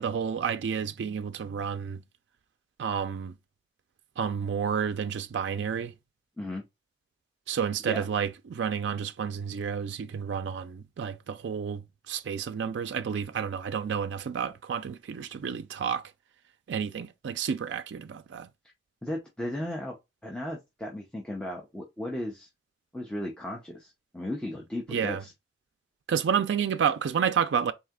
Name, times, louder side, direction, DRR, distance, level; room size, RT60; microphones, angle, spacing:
voice 1, 0.0-2.0 2.8-3.3 4.2-5.9 7.5-16.0 16.7-18.5 24.9-25.2 26.1-27.7, right 7 dB, 80° right, 0.4 m, -30 dB
voice 2, 19.0-20.0 20.2-22.5 22.9-25.3, left 1 dB, 5° left, 0.7 m, -35 dB
4.0 x 2.8 x 3.6 m
head